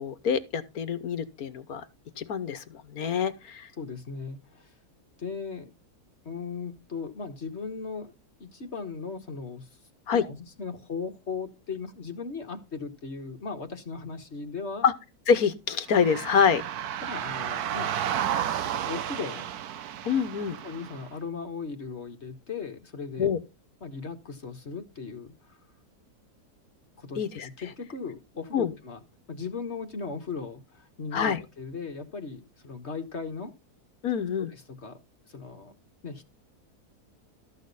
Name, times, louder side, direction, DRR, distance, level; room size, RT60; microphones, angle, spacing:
voice 1, 0.0-1.8 2.2-3.7 10.1-10.2 14.8-14.9 15.3-16.6 20.0-20.6 23.2-23.4 27.2-27.5 28.5-28.7 31.1-31.4 34.0-34.5, left 7 dB, 70° left, 1.5 m, -26 dB
voice 2, 3.8-4.7 5.2-5.7 6.2-8.1 8.4-9.8 10.1-14.8 17.0-17.9 18.7-19.4 20.6-23.3 23.8-25.6 27.0-33.5 34.5-35.0 35.3-35.7 36.0-36.3, left 5 dB, 45° left, 1.5 m, -37 dB
sound 1, 15.9-21.1, right 10 dB, 75° right, 1.3 m, -32 dB
13.5 x 6.5 x 4.0 m
omnidirectional pair, 1.7 m